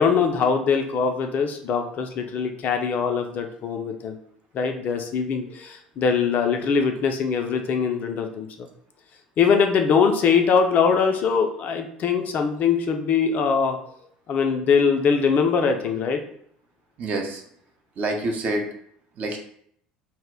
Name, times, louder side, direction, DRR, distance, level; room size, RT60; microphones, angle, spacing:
voice 1, 0.0-4.2 4.5-8.5 9.4-13.8 14.3-16.2, left 6 dB, 40° left, 5 dB, 0.3 m, -22 dB
voice 2, 17.0-17.4 18.0-18.6 19.2-19.4, right 2 dB, 40° right, 3 dB, 0.5 m, -26 dB
2.1 x 2.0 x 3.5 m, 0.66 s
figure-of-eight pair, 65°, 4 cm